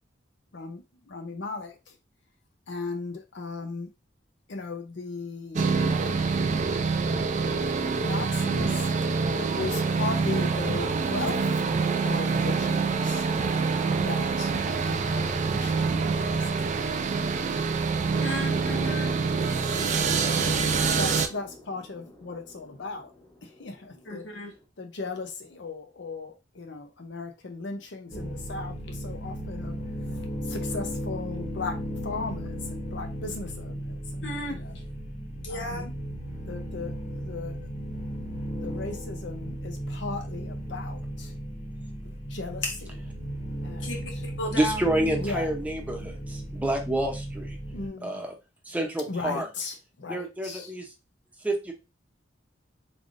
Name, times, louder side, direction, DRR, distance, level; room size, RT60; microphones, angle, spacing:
voice 1, 0.5-2.0 2.7-3.9 4.5-6.0 6.4-7.2 7.5-9.0 9.3-11.7 12.0-13.3 14.0-14.5 14.9-15.9 16.2-16.8 20.3-23.1 23.4-24.3 24.8-29.8 30.0-34.8 35.5-35.9 36.5-37.6 38.6-41.3 42.3-42.6 43.6-44.2 45.2-45.5 46.0-46.2 47.7-48.2 49.1-50.7, left 4 dB, 70° left, 0.7 m, -37 dB
sound 1, 5.6-21.3, right 4 dB, 40° right, 0.4 m, -26 dB
voice 2, 17.7-19.2 24.0-24.5 34.2-34.8 35.4-35.9 42.0-42.2 42.6-42.7 43.8-44.9, left 1 dB, 90° left, 1.2 m, -35 dB
sound 2, 18.3-24.6, left 2 dB, 20° left, 0.9 m, -47 dB
sound 3, 28.1-47.9, equal, 40° left, 1.2 m, -35 dB
voice 3, 44.5-47.6 48.0-48.3 48.7-49.5 50.1-50.9 51.4-51.7, right 1 dB, 10° right, 0.7 m, -28 dB
3.6 x 3.4 x 2.5 m
head